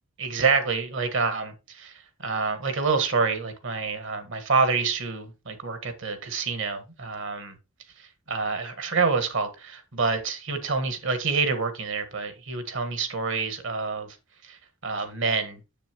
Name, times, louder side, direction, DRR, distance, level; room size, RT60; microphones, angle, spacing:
voice 1, 0.2-1.5 1.8-1.9 2.2-7.5 8.3-14.1 14.8-15.6, right 4 dB, 65° right, 1.5 m, -27 dB
7.5 x 6.9 x 3.0 m
head